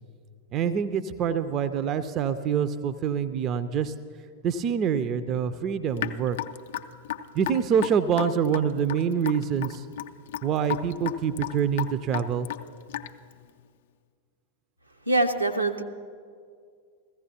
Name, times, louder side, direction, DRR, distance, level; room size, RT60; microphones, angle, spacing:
voice 1, 0.5-3.9 4.4-6.4 7.3-9.9 10.4-12.5, right 7 dB, 35° right, 13 dB, 0.4 m, -26 dB
Raindrop / Drip, 6.0-13.3, left 12 dB, 60° left, 0.4 m, -34 dB
voice 2, 15.1-15.8, right 2 dB, 85° right, 4 dB, 0.6 m, -24 dB
15.5 x 15.0 x 2.8 m, 2.1 s
figure-of-eight pair, 90°, 0 cm